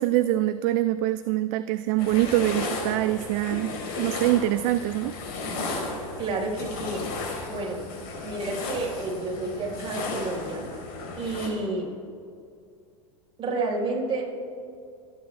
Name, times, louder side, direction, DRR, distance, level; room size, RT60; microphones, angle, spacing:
voice 1, 0.0-5.1, right 15 dB, 55° right, 13 dB, 0.4 m, -24 dB
sound 1, 2.0-11.5, left 3 dB, 55° left, 3.5 m, -34 dB
voice 2, 6.2-7.0 7.5-7.8 8.2-10.6 11.2-11.9 13.4-14.2, right 2 dB, 30° right, -2 dB, 3.9 m, -30 dB
25.5 x 9.1 x 3.2 m, 2.3 s
hypercardioid pair, 100°, 18 cm